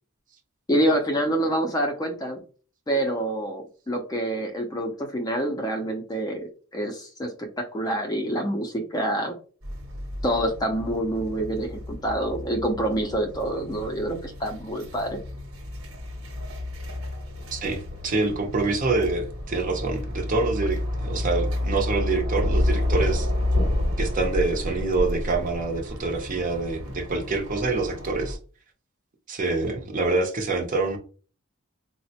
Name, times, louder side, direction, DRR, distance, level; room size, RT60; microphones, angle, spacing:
voice 1, 0.7-2.4 2.9-9.3 10.2-15.2, right 1 dB, 20° left, 4 dB, 0.4 m, -27 dB
sound 1, 9.6-28.3, left 1 dB, 80° right, 1.0 m, -30 dB
voice 2, 17.5-23.3 24.0-28.4 29.3-31.0, right 3 dB, 40° right, 3 dB, 0.6 m, -26 dB
4.0 x 2.1 x 2.7 m, 0.39 s
head